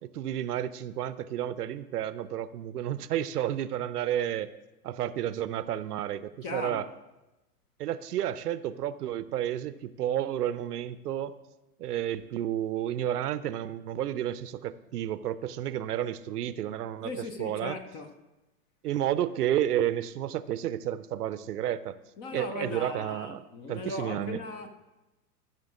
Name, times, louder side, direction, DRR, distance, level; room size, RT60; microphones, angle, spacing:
voice 1, 0.0-4.5 4.8-6.9 7.8-11.4 11.8-17.8 18.8-22.0 22.3-24.4, right 11 dB, 75° right, 0.6 m, -31 dB
voice 2, 6.4-6.8 17.0-18.1 22.2-24.7, left 3 dB, 20° left, 0.4 m, -38 dB
13.5 x 6.1 x 3.6 m
hypercardioid pair, 105°, 47 cm